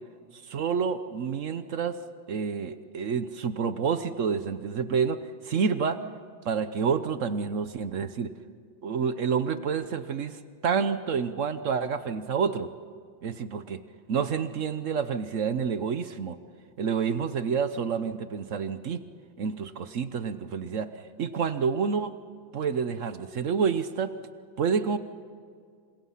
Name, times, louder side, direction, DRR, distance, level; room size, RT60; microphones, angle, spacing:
voice 1, 0.3-2.0 2.3-5.2 5.4-6.0 6.4-8.3 8.8-12.7 13.2-13.8 14.1-16.4 16.8-19.0 19.4-22.1 22.5-24.1 24.6-25.0, right 6 dB, 55° right, 11 dB, 0.9 m, -28 dB
29.5 x 26.5 x 5.7 m, 2.2 s
omnidirectional pair, 2.1 m